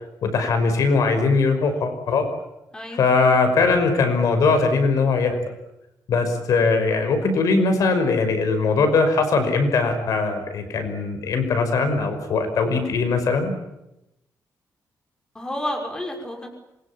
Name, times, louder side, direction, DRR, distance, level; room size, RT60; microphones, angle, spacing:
voice 1, 0.2-2.3 3.0-5.4 6.1-13.5, left 4 dB, 65° left, 7 dB, 5.6 m, -20 dB
voice 2, 2.7-3.4 15.3-16.5, left 1 dB, 10° left, 2 dB, 6.0 m, -31 dB
27.0 x 23.5 x 8.9 m, 0.89 s
wide cardioid pair, 165°, 6 cm